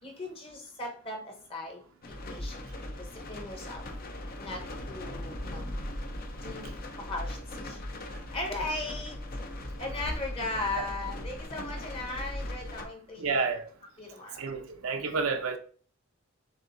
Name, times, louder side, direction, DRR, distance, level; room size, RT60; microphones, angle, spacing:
voice 1, 0.0-2.6 3.0-3.8 4.4-5.7 6.4-6.7 7.0-7.8 8.3-9.2 9.8-13.5 14.0-14.4, left 2 dB, 25° left, 1.1 m, -38 dB
sound 1, 2.0-12.9, left 1 dB, 45° left, 0.6 m, -39 dB
voice 2, 13.2-13.6 14.4-15.6, right 4 dB, 80° right, 0.7 m, -30 dB
7.3 x 2.7 x 2.6 m
head